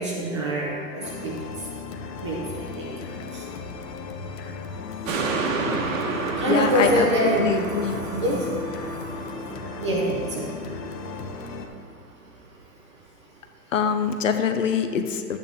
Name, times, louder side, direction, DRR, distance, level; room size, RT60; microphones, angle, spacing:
voice 1, 0.0-1.4 2.2-2.9 3.3-3.4 6.4-7.6 8.1-8.5 9.8-10.5, right 1 dB, 20° right, -3 dB, 0.6 m, -25 dB
sound 1, 1.0-11.7, left 4 dB, 80° left, 1.1 m, -36 dB
sound 2, 5.1-11.7 12.1-12.2, right 4 dB, 50° right, 1.2 m, -31 dB
voice 2, 6.5-8.0 13.7-15.4, left 6 dB, 50° left, 7 dB, 0.6 m, -24 dB
11.0 x 9.1 x 3.5 m, 2.3 s
hypercardioid pair, 175°, 49 cm